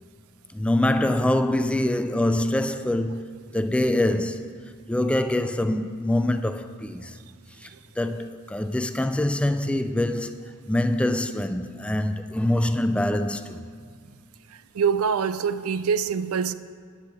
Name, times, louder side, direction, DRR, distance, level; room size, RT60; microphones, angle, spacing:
voice 1, 0.5-3.2 3.5-4.5 4.9-7.2 7.6-7.7 8.0-13.6, left 1 dB, 5° left, 0.3 m, -24 dB
voice 2, 14.7-16.5, right 6 dB, 75° right, 0.4 m, -24 dB
9.9 x 6.6 x 8.3 m
head